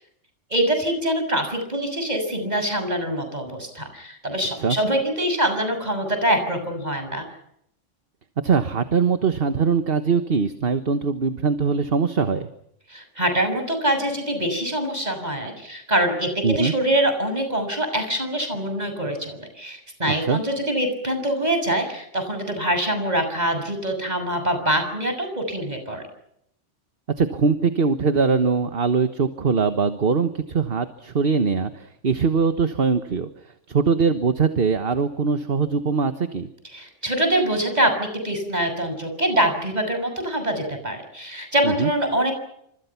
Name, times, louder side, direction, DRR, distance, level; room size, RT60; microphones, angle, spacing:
voice 1, 0.5-7.2 12.9-26.1 36.7-42.3, right 1 dB, 35° right, 6 dB, 6.8 m, -24 dB
voice 2, 8.4-12.5 16.4-16.7 20.1-20.4 27.2-33.3 33.7-36.5 41.6-41.9, right 5 dB, 50° right, 10 dB, 1.5 m, -22 dB
29.5 x 26.5 x 5.9 m, 0.74 s
omnidirectional pair, 1.2 m